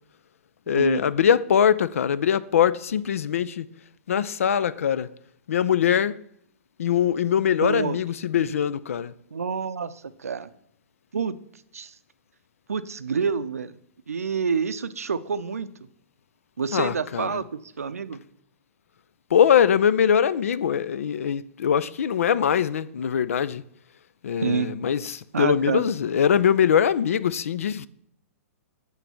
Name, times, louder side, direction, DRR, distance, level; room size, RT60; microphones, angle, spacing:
voice 1, 0.7-3.7 4.1-5.1 5.5-6.2 6.8-9.1 16.7-17.4 19.3-23.6 24.2-27.9, left 8 dB, 70° left, 0.4 m, -22 dB
voice 2, 7.6-8.0 9.3-10.5 11.1-11.4 11.7-12.0 12.7-13.8 14.1-15.7 16.6-18.2 24.4-24.7 25.3-25.9, right 5 dB, 80° right, 0.5 m, -28 dB
8.3 x 3.9 x 6.8 m
figure-of-eight pair, 120°, 8 cm